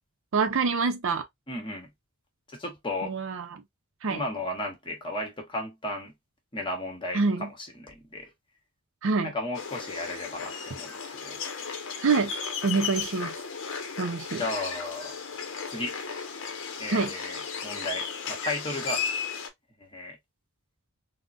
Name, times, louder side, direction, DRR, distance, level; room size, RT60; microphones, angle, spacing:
voice 1, 0.3-1.2 3.0-3.6 4.0-4.2 7.1-7.5 9.0-9.3 12.0-12.3 12.6-13.3 14.0-14.4 16.9-17.1, right 4 dB, 60° right, 0.5 m, -26 dB
voice 2, 1.5-1.9 2.5-3.1 4.1-6.1 6.5-8.3 9.2-10.9 11.2-11.4 14.3-15.1 15.7-16.0 16.8-19.0 19.8-20.2, left 1 dB, 20° left, 1.0 m, -34 dB
sound 1, 9.5-19.5, left 6 dB, 60° left, 0.7 m, -35 dB
3.6 x 2.1 x 2.5 m
head